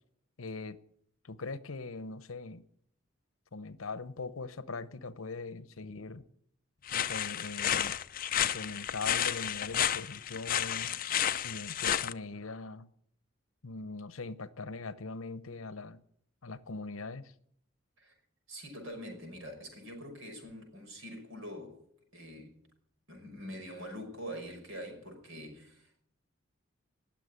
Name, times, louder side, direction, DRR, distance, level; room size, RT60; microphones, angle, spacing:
voice 1, 0.4-0.8 1.2-2.6 3.5-6.2 6.9-8.0 8.4-10.9 11.4-12.9 13.6-16.0 16.4-17.3, left 3 dB, 75° left, 0.9 m, -41 dB
sound 1, 6.9-12.1, left 10 dB, 40° left, 0.5 m, -31 dB
voice 2, 18.5-21.8 22.1-22.6 23.1-26.0, equal, 65° right, 5.6 m, -44 dB
19.5 x 7.3 x 9.6 m
head